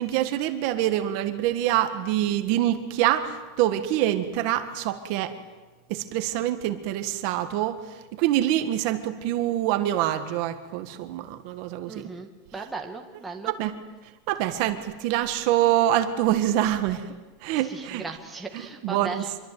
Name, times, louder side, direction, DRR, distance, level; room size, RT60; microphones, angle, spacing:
voice 1, 0.0-5.3 5.9-7.8 8.1-12.1 13.4-13.7 14.3-17.1 17.4-18.0 18.8-19.1, right 13 dB, 40° right, 8 dB, 1.7 m, -25 dB
voice 2, 11.9-13.5 17.5-19.4, right 4 dB, 5° right, 2 dB, 1.9 m, -37 dB
26.5 x 23.5 x 9.3 m, 1.2 s
supercardioid pair, 175°, 0 cm